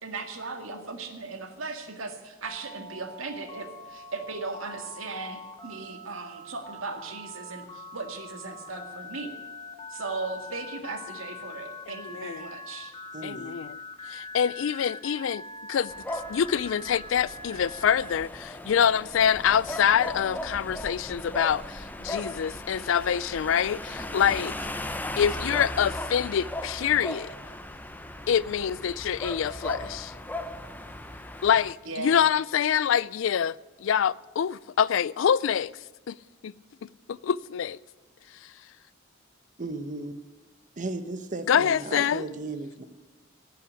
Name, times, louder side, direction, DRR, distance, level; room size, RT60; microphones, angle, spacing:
voice 1, 0.0-9.4 9.9-12.9 31.9-32.2, right 3 dB, 85° right, 1.9 m, -37 dB
Telephone, 2.4-18.1, left 2 dB, 25° left, 2.4 m, -43 dB
voice 2, 11.9-12.5 13.2-13.7 14.1-15.4 15.7-15.9 16.3-24.5 25.2-27.3 28.3-30.1 31.4-33.6 33.8-35.7 36.1-36.2 36.4-36.5 37.1-37.8 41.5-42.2, left 8 dB, 70° left, 0.4 m, -25 dB
voice 3, 13.1-13.6 39.6-40.1 40.8-42.9, right 2 dB, 40° right, 0.8 m, -35 dB
sound 1, 15.9-31.7, left 1 dB, 10° left, 0.6 m, -37 dB
17.5 x 5.9 x 9.8 m
head